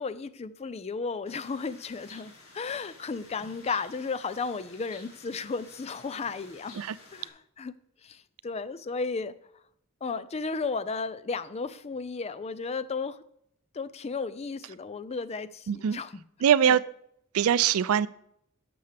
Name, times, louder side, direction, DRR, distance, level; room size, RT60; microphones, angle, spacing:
voice 1, 0.0-6.8 7.1-7.7 8.0-9.3 10.0-13.2 13.7-16.2 16.6-16.8, left 4 dB, 30° left, 0.4 m, -34 dB
sound 1, 1.3-7.3, left 3 dB, 85° left, 2.6 m, -52 dB
voice 2, 15.7-16.0 16.4-16.8 17.3-18.1, right 9 dB, 85° right, 0.4 m, -22 dB
12.0 x 6.9 x 3.4 m
head